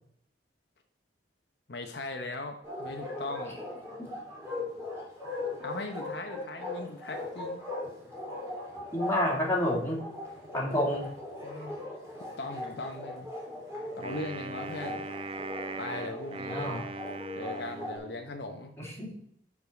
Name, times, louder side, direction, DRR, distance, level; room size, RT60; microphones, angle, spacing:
voice 1, 1.7-3.6 5.6-7.6 11.4-11.8 12.4-13.3 14.0-15.1 15.8-16.7 17.4-18.7, left 2 dB, 60° left, 4 dB, 0.8 m, -39 dB
Bark, 2.6-18.0, left 2 dB, 15° right, 2.8 m, -39 dB
voice 2, 8.9-10.0 10.5-11.1 16.5-16.8 18.8-19.2, left 1 dB, 15° left, -2 dB, 2.1 m, -29 dB
Wind instrument woodwind instrument, 14.0-18.4, right 3 dB, 30° right, 0.4 m, -40 dB
7.0 x 4.9 x 7.0 m, 0.66 s
head